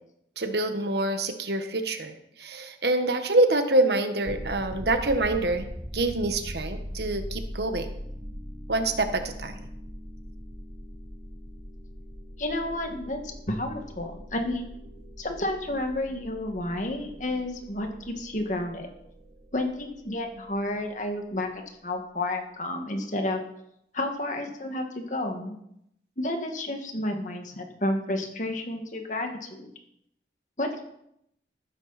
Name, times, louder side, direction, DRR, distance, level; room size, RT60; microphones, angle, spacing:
voice 1, 0.4-5.7 5.9-7.9 8.7-9.5, right 2 dB, 70° right, 7 dB, 1.4 m, -26 dB
sound 1, 4.2-21.1, equal, 45° right, 3.2 m, -41 dB
voice 2, 12.4-14.7 15.2-18.9 19.5-21.5 21.8-23.4 23.9-25.6 26.2-29.7 30.6-30.8, left 1 dB, 45° left, 4 dB, 2.0 m, -31 dB
14.5 x 12.5 x 4.3 m, 0.76 s
head